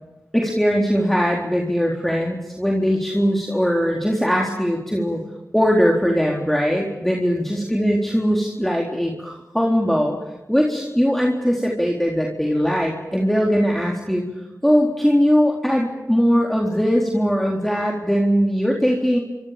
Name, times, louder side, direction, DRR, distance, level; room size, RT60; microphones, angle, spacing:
voice 1, 0.3-5.2 5.5-10.1 10.5-14.2 14.6-19.2, equal, 5° left, -1 dB, 3.9 m, -20 dB
30.0 x 25.0 x 5.2 m, 1.1 s
cardioid pair, 45°, 6 cm